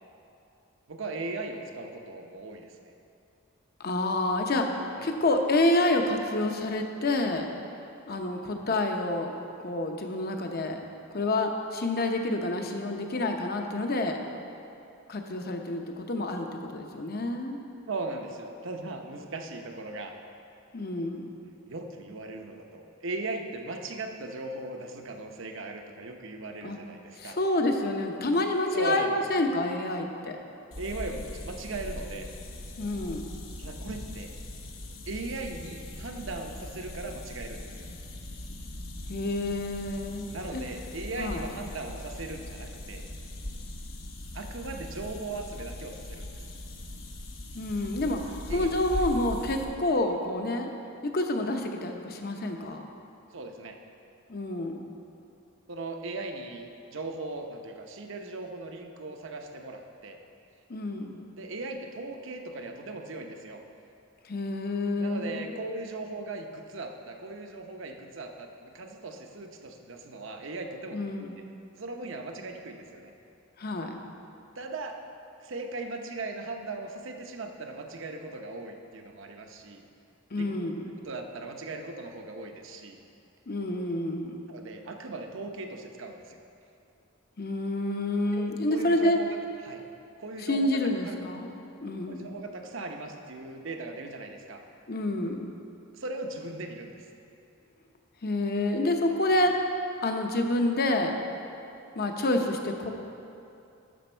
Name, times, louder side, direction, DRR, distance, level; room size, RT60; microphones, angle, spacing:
voice 1, 0.9-2.9 5.0-5.1 17.9-20.2 21.7-27.4 28.7-29.5 30.8-32.3 33.6-34.3 35.1-37.9 40.3-43.0 44.3-46.3 48.5-48.7 49.0-49.1 53.3-53.8 55.7-60.2 61.3-63.6 65.0-71.0 71.7-73.1 74.6-75.0 75.4-79.8 80.3-80.5 81.0-83.0 84.5-86.4 88.3-89.4 89.6-89.8 90.2-90.8 91.0-91.2 92.1-94.6 95.9-96.9 99.3-99.5, right 2 dB, 65° right, 3 dB, 0.8 m, -38 dB
voice 2, 3.8-7.4 8.1-9.3 9.6-10.8 11.1-14.2 15.1-17.6 20.7-21.4 26.6-26.8 27.2-30.4 32.8-33.2 39.1-40.6 41.2-41.4 47.5-48.2 48.5-50.7 51.0-52.9 54.3-54.8 60.7-61.2 64.3-65.5 70.9-71.4 73.6-74.0 80.3-80.9 83.5-84.5 87.4-89.2 90.4-91.5 91.8-92.4 94.9-95.4 98.2-99.5 100.0-101.2 101.9-102.9, left 2 dB, 50° left, 4 dB, 0.8 m, -28 dB
sound 1, 30.7-49.6, left 1 dB, 70° left, 1.1 m, -40 dB
11.5 x 7.1 x 4.5 m, 2.7 s
head